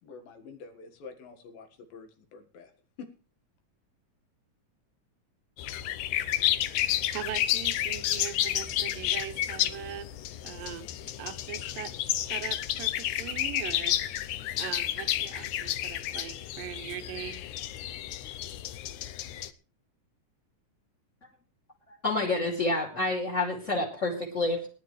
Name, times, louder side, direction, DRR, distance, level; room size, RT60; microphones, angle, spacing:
voice 1, 0.0-2.7 3.0-3.1, left 5 dB, 90° left, 6 dB, 3.5 m, -47 dB
sound 1, 5.6-19.5, left 13 dB, 75° left, 2.0 m, -31 dB
voice 2, 7.1-10.1 10.4-11.9 12.3-14.3 14.6-17.4, right 11 dB, 85° right, 9 dB, 2.7 m, -40 dB
voice 3, 21.9-24.7, left 2 dB, 25° left, 1 dB, 2.8 m, -28 dB
20.0 x 11.0 x 3.2 m, 0.37 s
omnidirectional pair, 3.9 m